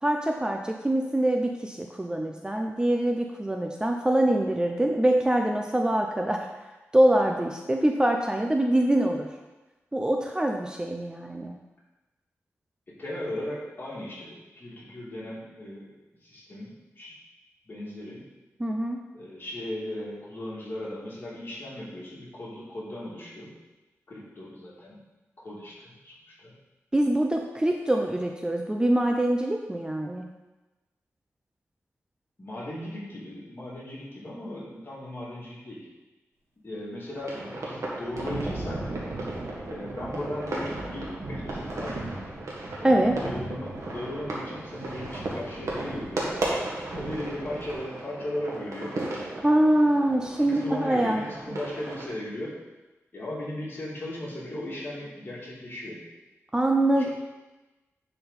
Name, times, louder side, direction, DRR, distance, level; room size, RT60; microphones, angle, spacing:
voice 1, 0.0-6.5 6.9-9.3 9.9-11.6 18.6-19.0 26.9-30.2 42.8-43.2 49.4-51.2 56.5-57.1, right 1 dB, 15° right, 2 dB, 0.6 m, -24 dB
voice 2, 12.9-17.1 17.6-18.2 19.1-23.5 24.1-25.0 25.4-26.5 32.4-35.9 36.6-38.9 39.6-42.1 42.8-46.4 46.9-48.9 50.5-52.6 53.1-56.0 56.9-57.1, left 1 dB, 45° left, -7 dB, 2.9 m, -37 dB
sound 1, 37.2-52.1, right 2 dB, 80° right, 1.7 m, -36 dB
Thunder, 37.6-47.7, right 2 dB, 60° right, 1.9 m, -39 dB
10.5 x 4.4 x 4.2 m, 1.1 s
wide cardioid pair, 105°, 5 cm